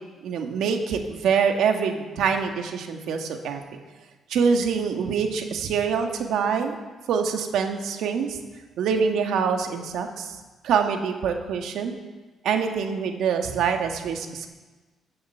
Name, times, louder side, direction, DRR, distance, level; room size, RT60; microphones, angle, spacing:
voice 1, 0.2-3.6 4.3-6.8 7.1-8.4 8.8-10.4 10.6-12.0 12.4-14.5, right 6 dB, 80° right, 4 dB, 1.6 m, -25 dB
13.5 x 7.9 x 6.8 m, 1.2 s
cardioid pair, 90°, 0 cm